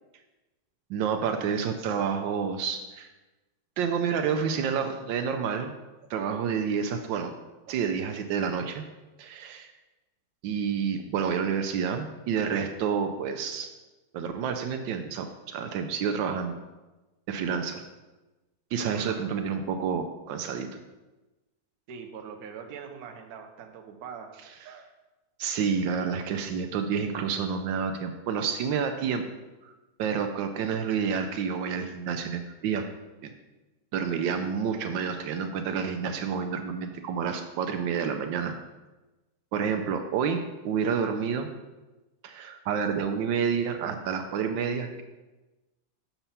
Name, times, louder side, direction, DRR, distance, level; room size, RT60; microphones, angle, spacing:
voice 1, 0.9-3.1 3.8-5.7 6.1-7.3 7.7-8.8 9.2-9.7 10.4-13.7 14.1-16.6 17.3-17.8 18.7-20.8 24.7-24.9 25.4-29.2 29.6-29.7 30.0-32.8 33.2-33.3 33.9-38.5 39.5-41.5 42.2-45.0, right 6 dB, 80° right, 7 dB, 1.3 m, -29 dB
voice 2, 19.0-19.3 21.9-24.3, right 6 dB, 60° right, 4 dB, 1.1 m, -42 dB
6.8 x 4.4 x 5.5 m, 1.1 s
omnidirectional pair, 2.1 m